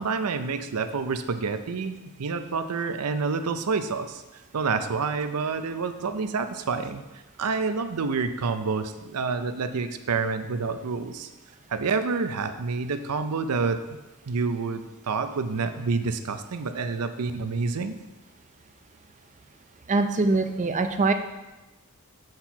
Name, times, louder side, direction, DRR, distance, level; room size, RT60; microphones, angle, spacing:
voice 1, 0.0-4.2 4.5-7.0 7.4-11.3 11.7-14.0 14.3-17.9, right 4 dB, 90° right, 10 dB, 0.6 m, -28 dB
voice 2, 19.9-21.1, right 3 dB, 35° right, 7 dB, 0.5 m, -23 dB
7.8 x 4.4 x 5.7 m, 1.1 s
head